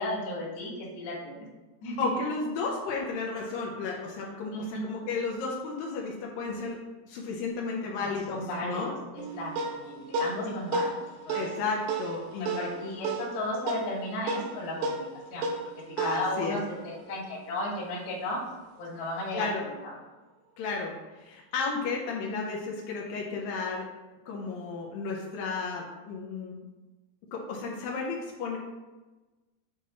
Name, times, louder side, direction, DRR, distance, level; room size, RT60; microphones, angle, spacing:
voice 1, 0.0-1.5 1.8-2.1 4.5-5.1 8.0-11.5 12.4-15.5 16.0-18.4 18.8-19.9, left 1 dB, 70° left, -7 dB, 3.5 m, -35 dB
voice 2, 2.0-6.8 7.1-8.9 11.3-12.7 16.0-16.6 19.3-19.6 20.6-23.9 24.3-26.7 27.3-28.6, left 4 dB, 90° left, -2 dB, 2.0 m, -33 dB
sound 1, 9.2-17.9, right 3 dB, 75° right, 2.8 m, -34 dB
8.5 x 3.1 x 5.9 m, 1.2 s
omnidirectional pair, 5.1 m